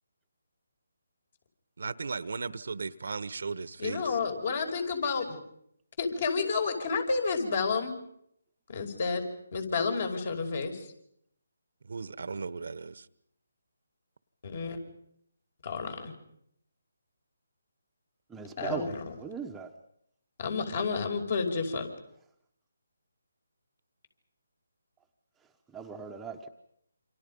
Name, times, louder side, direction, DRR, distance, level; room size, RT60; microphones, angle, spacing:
voice 1, 1.8-4.2 11.8-13.0, right 4 dB, 65° right, 16 dB, 1.2 m, -36 dB
voice 2, 3.8-5.4 6.0-7.9 8.7-10.8 14.4-14.8 15.6-16.1 18.6-19.2 20.4-21.9, left 4 dB, 50° left, 5 dB, 5.4 m, -30 dB
voice 3, 18.3-18.9 19.2-19.7 25.7-26.5, right 6 dB, 5° right, 2 dB, 1.2 m, -38 dB
28.5 x 26.5 x 5.4 m, 0.72 s
figure-of-eight pair, 155°, 0 cm